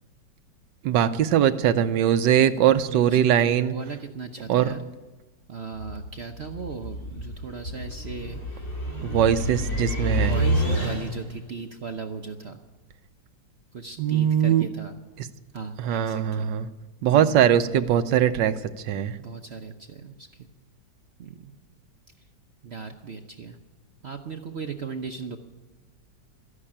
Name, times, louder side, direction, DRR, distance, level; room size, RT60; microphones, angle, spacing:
voice 1, 0.8-3.8 4.5-4.7 9.0-10.3 14.0-14.7 15.2-15.3 15.8-16.7 17.0-19.2, right 10 dB, 80° right, 11 dB, 1.3 m, -21 dB
voice 2, 2.9-4.9 5.5-8.7 9.2-9.6 10.1-12.6 13.7-14.9 15.5-16.5 17.1-17.5 19.2-20.3 21.2-21.5 22.6-23.6 24.0-25.4, right 5 dB, 55° right, 6 dB, 0.7 m, -37 dB
sound 1, 5.8-11.4, equal, 55° left, 3.5 m, -29 dB
13.5 x 11.5 x 8.7 m, 1.1 s
omnidirectional pair, 2.0 m